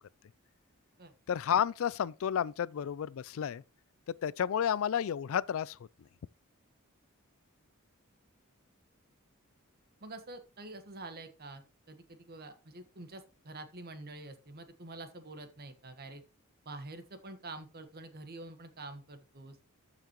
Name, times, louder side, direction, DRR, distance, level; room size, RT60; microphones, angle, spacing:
voice 1, 1.3-3.6 4.2-5.8, left 8 dB, 65° left, 0.3 m, -31 dB
voice 2, 10.0-16.2 16.6-19.6, right 2 dB, 45° right, 1.3 m, -47 dB
13.5 x 5.8 x 3.0 m
head